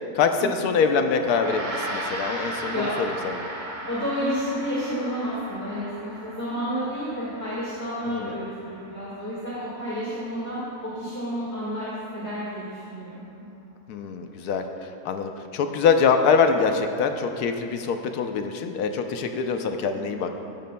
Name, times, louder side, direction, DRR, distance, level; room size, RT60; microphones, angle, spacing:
voice 1, 0.1-2.9 3.2-3.4 8.1-8.4 13.9-20.3, left 5 dB, 80° left, 6 dB, 1.1 m, -24 dB
Gong, 1.2-10.8, right 1 dB, 35° right, 1.0 m, -37 dB
voice 2, 2.5-2.9 3.9-13.2 19.9-20.1, equal, 10° left, -9 dB, 1.5 m, -31 dB
14.5 x 9.2 x 2.2 m, 2.7 s
omnidirectional pair, 1.7 m